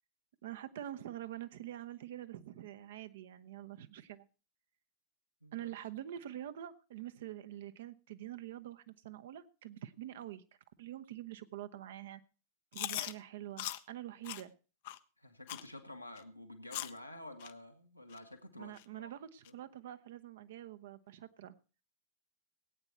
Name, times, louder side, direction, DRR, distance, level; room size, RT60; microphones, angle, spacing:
voice 1, 0.4-4.3 5.5-10.4 10.8-12.2 12.7-14.5 18.6-21.5, right 12 dB, 60° right, 12 dB, 0.9 m, -46 dB
Chewing mastication, 12.7-13.1 13.6-13.8 14.2-14.4 14.8-15.0 15.5-15.7 16.2-16.3 16.7-17.0 17.4-17.5 18.1-18.2 18.8-18.9 19.4-19.5, left 15 dB, 50° left, 0.6 m, -40 dB
voice 2, 15.2-19.1 19.5-19.6, left 1 dB, 90° left, 4 dB, 1.7 m, -50 dB
18.0 x 9.0 x 4.5 m, 0.35 s
figure-of-eight pair, 90°, 0 cm